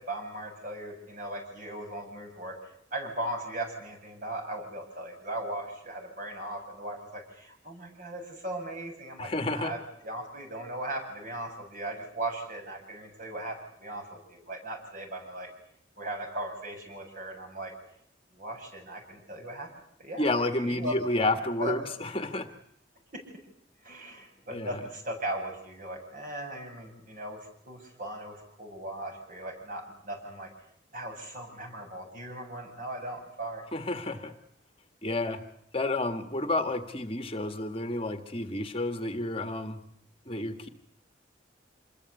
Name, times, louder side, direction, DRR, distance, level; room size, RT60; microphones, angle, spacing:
voice 1, 0.0-15.5 16.0-17.7 18.3-19.7 20.0-20.3 20.5-21.3 21.6-21.8 23.8-27.4 27.6-30.5 30.9-33.6, right 1 dB, 45° right, 3 dB, 7.7 m, -38 dB
voice 2, 9.2-9.7 20.2-22.5 24.5-24.8 33.7-34.3 35.0-35.4 35.7-39.8 40.2-40.7, left 2 dB, 30° left, 7 dB, 1.6 m, -30 dB
27.0 x 21.5 x 8.4 m, 0.72 s
head